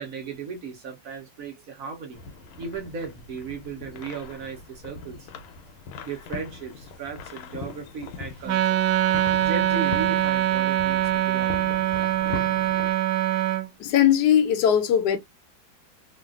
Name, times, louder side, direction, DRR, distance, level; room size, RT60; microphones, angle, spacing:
voice 1, 0.0-2.2 2.6-5.3 6.0-8.8 9.4-11.8, right 5 dB, 65° right, 0.9 m, -36 dB
sound 1, 2.1-12.9, left 4 dB, 85° left, 1.4 m, -40 dB
Wind instrument woodwind instrument, 8.5-13.7, right 12 dB, 80° right, 1.3 m, -23 dB
voice 2, 13.8-15.2, left 9 dB, 65° left, 1.1 m, -20 dB
3.2 x 2.4 x 2.3 m
omnidirectional pair, 2.2 m